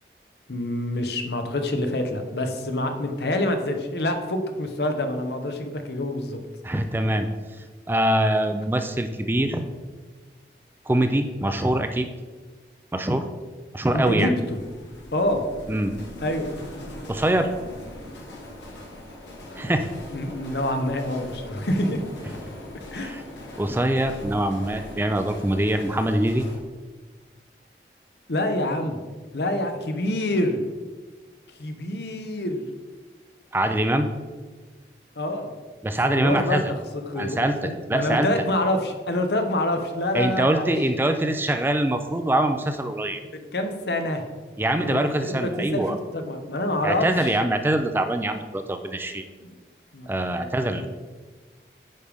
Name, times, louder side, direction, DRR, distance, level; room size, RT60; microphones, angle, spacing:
voice 1, 0.5-6.4 13.9-14.6 15.1-15.4 16.2-16.6 19.5-19.6 20.1-22.0 22.9-23.1 23.9-24.0 28.3-29.0 29.3-30.6 31.6-32.6 35.2-35.5 36.2-36.6 37.1-40.8 43.3-44.2 44.8-47.4 49.4-49.6 49.9-50.9, left 1 dB, 70° left, 6 dB, 0.8 m, -27 dB
voice 2, 6.6-7.3 7.9-9.6 10.9-12.1 12.9-13.2 13.7-14.3 15.7-15.9 17.1-17.5 19.6-19.9 22.9-23.2 23.6-26.5 33.5-34.1 35.8-36.7 37.2-37.6 37.9-38.3 40.1-43.2 44.6-46.0 46.8-49.2 50.1-50.9, right 1 dB, 10° right, 7 dB, 0.4 m, -23 dB
sound 1, 14.4-26.6, left 1 dB, 90° left, 1.6 m, -41 dB
9.4 x 5.2 x 3.5 m, 1.3 s
head